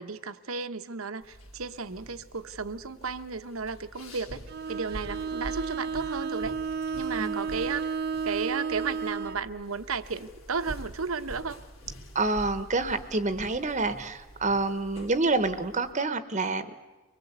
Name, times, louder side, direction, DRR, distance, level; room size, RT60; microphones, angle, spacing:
voice 1, 0.0-4.4 4.7-6.5 6.9-7.9 8.2-11.6, right 5 dB, 85° right, 11 dB, 1.1 m, -34 dB
sound 1, 1.2-15.9, equal, 80° left, 3.8 m, -46 dB
Bowed string instrument, 4.5-9.5, right 5 dB, 50° right, 0.7 m, -32 dB
voice 2, 12.1-16.8, right 3 dB, 35° right, 12 dB, 1.0 m, -28 dB
24.0 x 21.0 x 8.1 m, 1.2 s
head